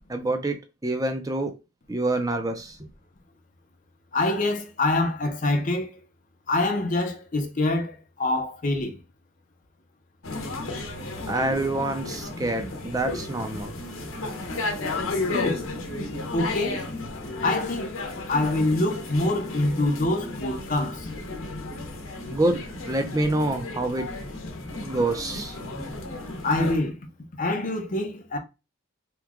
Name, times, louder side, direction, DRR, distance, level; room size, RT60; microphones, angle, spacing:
voice 1, 0.1-0.6 0.8-1.5 1.9-2.7 11.3-13.7 22.3-22.6 22.9-24.1 24.8-25.5, right 2 dB, 15° right, 0.5 m, -26 dB
voice 2, 4.1-5.9 6.5-9.0 15.3-15.7 16.3-16.9 17.4-17.9 18.3-21.1 26.4-27.0 27.4-28.4, left 2 dB, 40° left, 0.7 m, -25 dB
sound 1, 10.2-26.8, left 2 dB, 80° left, 0.8 m, -33 dB
3.0 x 2.3 x 3.5 m
head